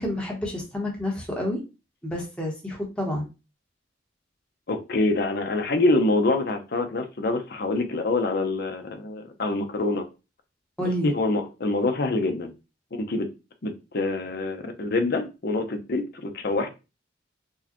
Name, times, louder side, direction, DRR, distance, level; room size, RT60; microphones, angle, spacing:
voice 1, 0.0-1.6 2.0-3.2 10.8-11.1, left 1 dB, 5° left, -2 dB, 0.9 m, -29 dB
voice 2, 4.7-10.0 11.0-12.5 13.0-13.3 13.6-16.7, left 2 dB, 55° left, 6 dB, 0.6 m, -25 dB
4.5 x 2.2 x 2.9 m, 0.28 s
head